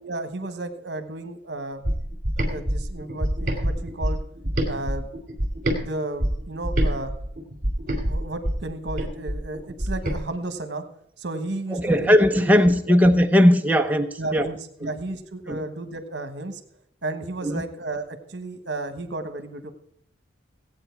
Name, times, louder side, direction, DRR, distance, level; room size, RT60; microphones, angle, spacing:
voice 1, 0.0-1.8 2.4-4.2 4.7-5.1 5.7-7.1 8.0-10.8 11.2-12.4 12.9-13.0 14.2-16.6 17.0-19.7, right 2 dB, 60° right, 1.3 m, -33 dB
sound 1, 1.8-5.8 6.2-10.2, equal, 45° right, 2.4 m, -26 dB
voice 2, 11.7-14.5 14.8-14.9 15.5-15.6 17.4-17.6, equal, 10° right, 0.8 m, -18 dB
16.5 x 8.9 x 4.6 m
head